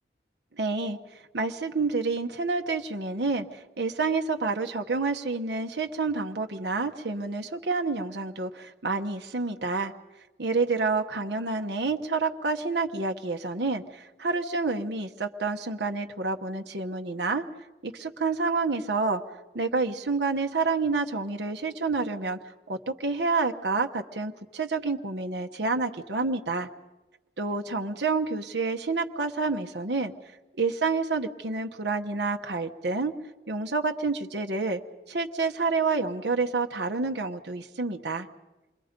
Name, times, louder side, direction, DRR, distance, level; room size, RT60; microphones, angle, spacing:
voice 1, 0.6-1.0 1.3-9.9 10.4-17.4 17.8-19.2 19.5-22.4 22.7-26.7 27.4-30.1 30.6-33.1 33.5-34.8 35.1-38.3, right 3 dB, 75° right, 4 dB, 1.0 m, -28 dB
28.0 x 22.0 x 5.2 m, 1.1 s
head